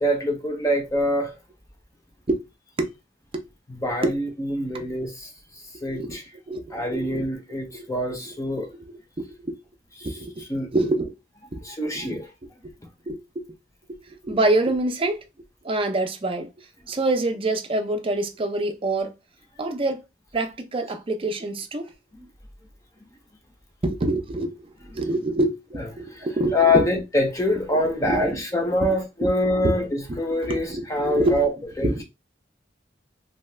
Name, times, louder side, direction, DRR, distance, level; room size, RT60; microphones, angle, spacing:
voice 1, 0.0-1.3 3.7-5.3 5.8-6.2 6.7-8.7 10.5-10.7 11.7-12.2 26.5-31.5 31.8-32.0, left 1 dB, 20° left, 0.6 m, -24 dB
voice 2, 5.8-6.2 6.5-7.3 7.7-7.9 8.6-9.5 10.0-10.4 10.7-11.1 11.5-11.6 11.9-12.2 13.1-13.4 13.9-15.2 15.6-19.1 19.6-20.0 20.3-21.9 23.8-26.9 28.0-28.4 28.8-29.0 29.2-29.3 29.6-29.7 30.4-31.4 31.8-32.0, right 2 dB, 30° right, 0.5 m, -26 dB
2.7 x 2.3 x 3.2 m
head